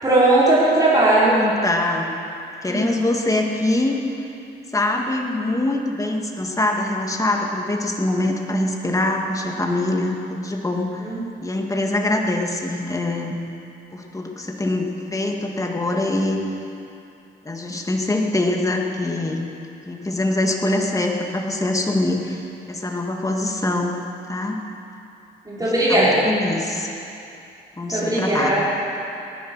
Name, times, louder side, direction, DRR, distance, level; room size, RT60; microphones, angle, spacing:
voice 1, 0.0-1.4 2.7-2.8 11.0-11.2 25.5-26.3 27.9-28.6, right 2 dB, 20° right, -8 dB, 4.8 m, -18 dB
voice 2, 1.1-2.2 2.6-4.3 4.7-11.0 11.4-13.4 13.9-16.4 17.4-19.5 19.9-24.0 24.3-24.6 25.6-26.9 27.8-28.6, left 2 dB, 15° left, 1 dB, 2.1 m, -24 dB
18.5 x 11.5 x 6.3 m, 2.7 s
cardioid pair, 90°, 20 cm